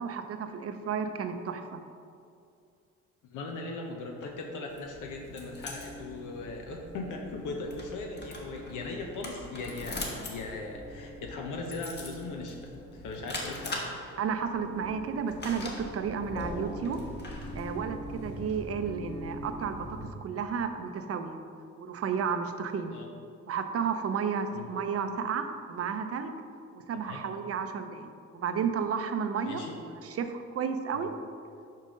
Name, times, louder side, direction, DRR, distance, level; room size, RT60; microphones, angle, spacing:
voice 1, 0.0-1.8 14.2-17.1 17.5-21.4 21.8-23.0 23.5-26.3 26.7-31.1, right 6 dB, 50° right, 7 dB, 0.6 m, -32 dB
voice 2, 3.3-13.8 22.9-23.1 24.5-24.7 27.1-27.2 29.5-29.7 30.9-31.1, left 3 dB, 85° left, 1 dB, 0.8 m, -39 dB
sound 1, 4.7-20.1, left 1 dB, 35° left, 1.3 m, -41 dB
5.4 x 5.4 x 5.1 m, 2.4 s
cardioid pair, 90°, 30 cm